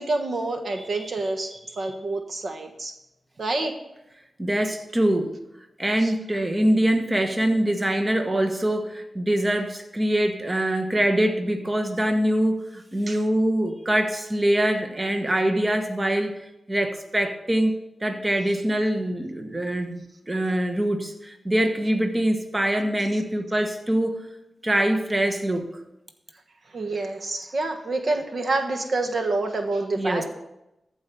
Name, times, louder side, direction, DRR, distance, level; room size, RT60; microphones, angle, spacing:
voice 1, 0.0-2.9 3.4-3.7 6.0-6.1 13.1-13.2 26.7-30.2, right 2 dB, 60° right, 5 dB, 1.3 m, -27 dB
voice 2, 4.4-5.4 5.8-17.7 18.0-24.3 24.6-25.7 30.0-30.2, right 1 dB, 25° right, 5 dB, 1.2 m, -24 dB
14.0 x 4.8 x 6.9 m, 0.90 s
cardioid pair, 65°, 0 cm